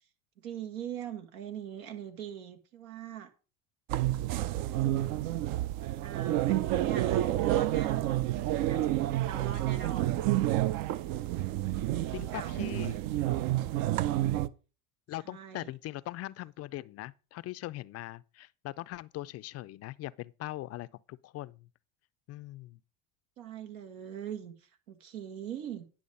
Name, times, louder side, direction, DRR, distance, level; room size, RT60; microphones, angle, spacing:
voice 1, 0.4-3.3 4.8-5.1 6.0-10.2 11.3-11.7 11.9-12.7 15.2-15.7 23.4-25.9, right 9 dB, 85° right, 1.8 m, -42 dB
sound 1, 3.9-14.5, right 14 dB, 55° right, 0.6 m, -29 dB
voice 2, 12.1-13.0 15.1-21.7 22.3-22.8, left 16 dB, 40° left, 0.4 m, -41 dB
10.0 x 6.2 x 5.3 m
supercardioid pair, 110°, 40 cm